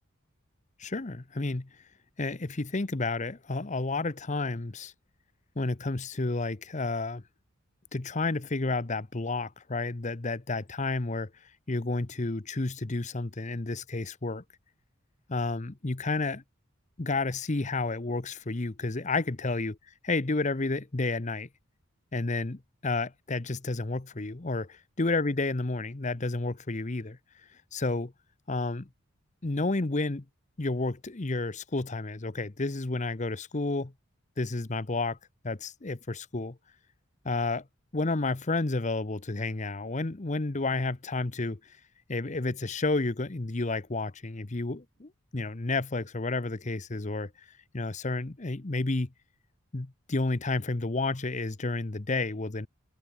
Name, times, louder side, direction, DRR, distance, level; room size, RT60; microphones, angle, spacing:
voice 1, 0.8-1.7 2.2-4.9 5.6-7.2 7.9-11.3 11.7-14.4 15.3-16.4 17.0-19.8 20.0-21.5 22.1-24.7 25.0-27.2 27.7-28.1 28.5-28.9 29.4-30.2 30.6-33.9 34.4-35.2 35.4-36.6 37.2-37.7 37.9-41.8 42.1-47.5 47.7-49.1 49.7-52.7, left 3 dB, 35° left, 0.9 m, -31 dB
head